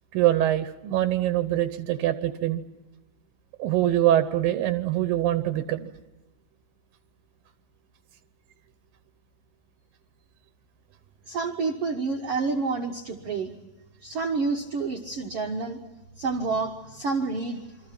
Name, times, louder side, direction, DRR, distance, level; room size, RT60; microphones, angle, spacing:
voice 1, 0.1-2.6 3.6-5.9, right 13 dB, 80° right, 10 dB, 2.6 m, -24 dB
voice 2, 11.3-13.5 14.0-15.8 16.2-17.6, right 4 dB, 55° right, 3 dB, 1.8 m, -28 dB
27.5 x 24.5 x 5.9 m, 1.1 s
omnidirectional pair, 4.1 m